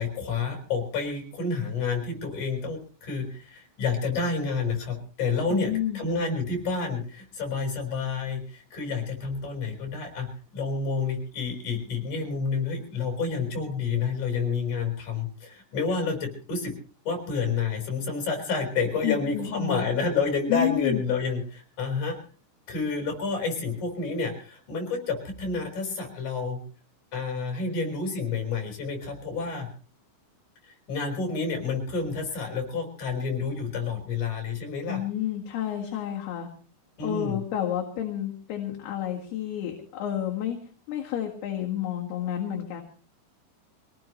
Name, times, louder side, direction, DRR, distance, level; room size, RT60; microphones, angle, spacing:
voice 1, 0.0-16.7 17.0-22.2 22.7-26.6 27.1-29.7 30.6-35.0 37.0-37.4, left 4 dB, 40° left, 3 dB, 6.3 m, -29 dB
voice 2, 5.5-6.0 19.0-19.8 20.5-21.0 34.9-36.5 37.0-40.6 40.9-42.8, left 11 dB, 65° left, 0 dB, 3.6 m, -30 dB
24.5 x 18.0 x 3.2 m, 0.38 s
omnidirectional pair, 5.4 m